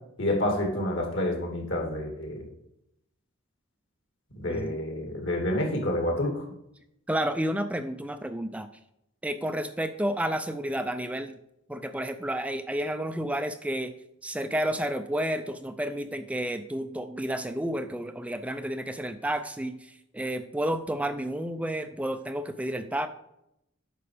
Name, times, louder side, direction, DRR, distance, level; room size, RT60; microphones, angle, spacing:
voice 1, 0.2-2.4 4.3-6.4, left 1 dB, 60° left, 2 dB, 2.5 m, -28 dB
voice 2, 7.1-8.7 9.2-11.4 11.7-13.9 14.2-23.1, right 1 dB, 5° right, 9 dB, 0.4 m, -31 dB
9.3 x 5.9 x 4.9 m, 0.80 s
head